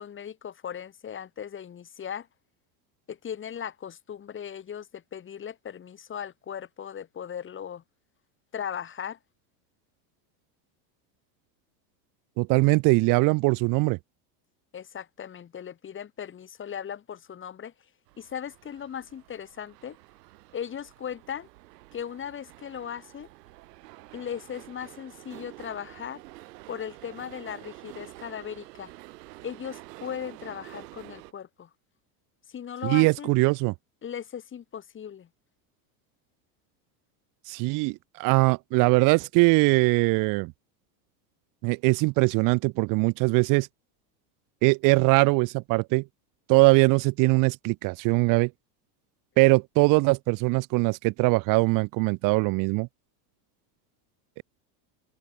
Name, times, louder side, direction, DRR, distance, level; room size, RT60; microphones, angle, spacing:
voice 1, 0.0-2.3 3.1-7.8 8.5-9.2 14.7-17.7 18.2-20.0 20.5-21.5 21.9-23.3 24.1-26.2 26.7-28.9 29.4-31.7 32.5-33.3 34.0-35.3, left 8 dB, 25° left, 6.1 m, -38 dB
voice 2, 12.4-14.0 32.8-33.7 37.5-40.5 41.6-43.7 44.6-46.0 46.5-48.5 49.4-52.9 54.4-54.5, right 27 dB, 40° right, 0.8 m, -22 dB
sound 1, 18.1-31.3, right 20 dB, 75° right, 6.1 m, -48 dB
open air
supercardioid pair, 150°, 49 cm